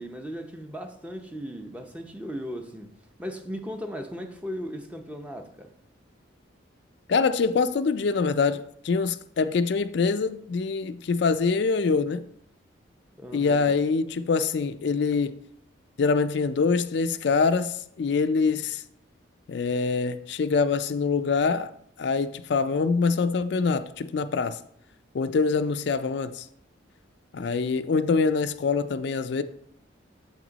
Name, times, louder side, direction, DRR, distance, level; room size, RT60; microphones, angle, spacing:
voice 1, 0.0-2.9 3.2-5.7 13.2-13.7, equal, 5° right, 0.6 m, -37 dB
voice 2, 7.1-12.2 13.3-15.3 16.0-18.8 19.5-21.7 22.0-24.6 25.1-26.5 27.3-29.4, left 4 dB, 60° left, 0.4 m, -24 dB
7.9 x 6.0 x 4.0 m
head